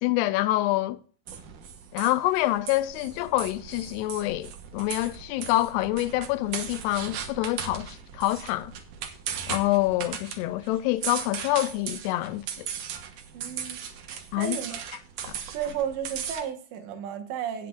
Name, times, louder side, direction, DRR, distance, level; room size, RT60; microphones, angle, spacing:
voice 1, 0.0-1.0 1.9-8.7 9.5-12.7 14.3-14.6 15.3-15.4, left 16 dB, 85° left, 2.6 m, -26 dB
sound 1, 1.3-16.4, right 8 dB, 65° right, 2.3 m, -38 dB
voice 2, 13.3-13.8 14.4-14.8 15.5-17.7, right 8 dB, 85° right, 3.7 m, -33 dB
16.5 x 7.7 x 2.5 m
omnidirectional pair, 4.9 m